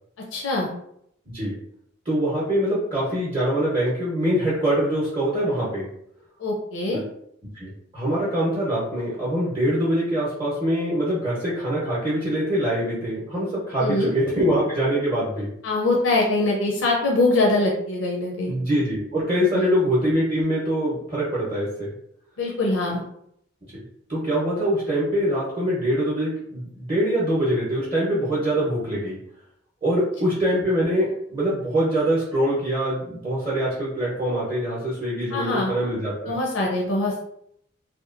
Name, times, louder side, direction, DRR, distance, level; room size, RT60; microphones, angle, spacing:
voice 1, 0.3-0.7 6.4-7.0 13.8-14.1 15.6-18.5 19.5-19.8 22.4-23.0 35.3-35.7 36.3-37.2, left 2 dB, 75° left, -2 dB, 0.5 m, -23 dB
voice 2, 2.1-5.9 6.9-7.0 7.5-15.5 18.5-21.9 24.1-29.2 29.8-36.3, equal, 30° right, -8 dB, 0.7 m, -24 dB
2.8 x 2.2 x 2.4 m, 0.72 s
head